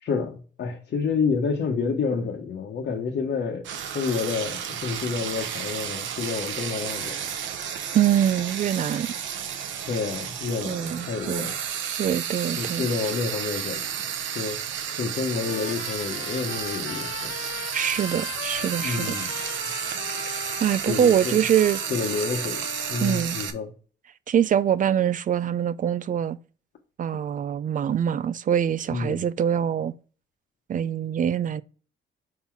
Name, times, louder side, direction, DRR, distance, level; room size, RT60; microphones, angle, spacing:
voice 1, 0.0-3.7 3.9-7.3 9.9-11.5 12.6-13.9 14.3-14.6 15.0-17.3 18.8-19.3 20.9-21.4 21.9-23.7 28.9-29.2, left 5 dB, 60° left, 1.1 m, -29 dB
Frying (food), 3.6-23.5, right 8 dB, 75° right, 0.9 m, -32 dB
voice 2, 7.9-9.1 10.7-11.5 12.0-12.9 17.7-19.2 20.6-21.8 23.0-23.4 24.3-26.4 27.0-29.9 30.7-31.6, right 9 dB, 40° right, 0.4 m, -24 dB
Trumpet, 15.4-23.3, left 10 dB, 75° left, 0.5 m, -39 dB
5.6 x 3.9 x 4.5 m
cardioid pair, 90°, 20 cm